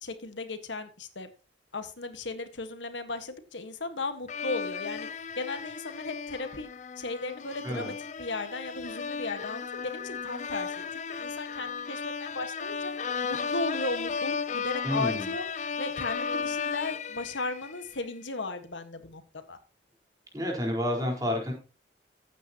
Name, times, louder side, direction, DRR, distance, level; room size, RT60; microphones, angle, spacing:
voice 1, 0.0-1.3 1.7-6.7 7.0-12.9 13.2-15.4 15.8-19.2 19.5-19.6, left 3 dB, 80° left, 9 dB, 1.6 m, -36 dB
sound 1, 4.3-18.0, left 5 dB, 40° left, 0.6 m, -35 dB
voice 2, 14.8-15.3 20.3-21.5, left 1 dB, 20° right, 0 dB, 4.4 m, -29 dB
14.5 x 9.2 x 3.0 m, 0.35 s
head